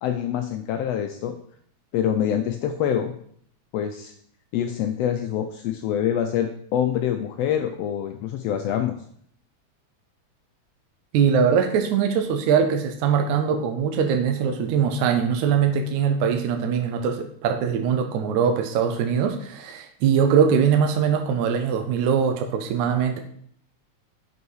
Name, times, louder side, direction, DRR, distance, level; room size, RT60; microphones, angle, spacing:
voice 1, 0.0-1.3 1.9-3.1 3.7-4.1 4.5-9.0, left 9 dB, 80° left, 6 dB, 1.5 m, -25 dB
voice 2, 11.1-23.2, right 7 dB, 80° right, 5 dB, 2.1 m, -22 dB
6.4 x 5.5 x 4.7 m, 0.62 s
omnidirectional pair, 3.3 m